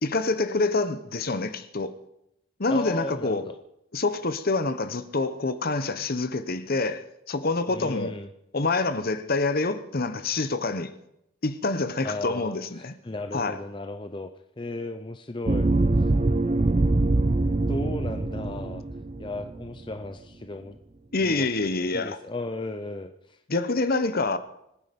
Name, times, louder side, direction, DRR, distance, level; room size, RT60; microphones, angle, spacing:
voice 1, 0.0-1.9 2.6-3.4 3.9-8.1 8.5-10.9 11.4-12.9 13.3-13.6 21.1-22.2 23.5-24.4, left 3 dB, 45° left, 0.9 m, -26 dB
voice 2, 2.7-3.6 7.7-8.3 12.0-15.7 16.0-16.1 17.7-18.8 19.2-20.8 21.2-21.5 21.9-23.4, left 2 dB, 20° left, 0.6 m, -35 dB
sound 1, 15.5-19.7, right 2 dB, 30° right, 0.6 m, -24 dB
25.5 x 9.9 x 5.3 m
head